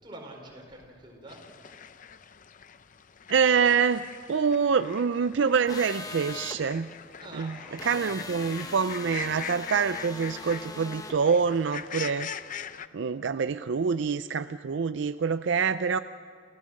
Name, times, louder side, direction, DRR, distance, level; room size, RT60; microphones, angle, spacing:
voice 1, 0.0-1.5 7.2-8.3, right 1 dB, 25° right, -1 dB, 4.9 m, -46 dB
sound 1, 1.3-12.9, left 8 dB, 45° left, 0.6 m, -42 dB
voice 2, 3.3-6.9 7.3-7.6 7.8-12.3 12.9-16.0, right 6 dB, 65° right, 12 dB, 0.4 m, -26 dB
sound 2, 5.7-6.6 7.8-11.2, left 3 dB, 20° left, 1.1 m, -41 dB
29.0 x 15.5 x 6.5 m, 2.3 s
head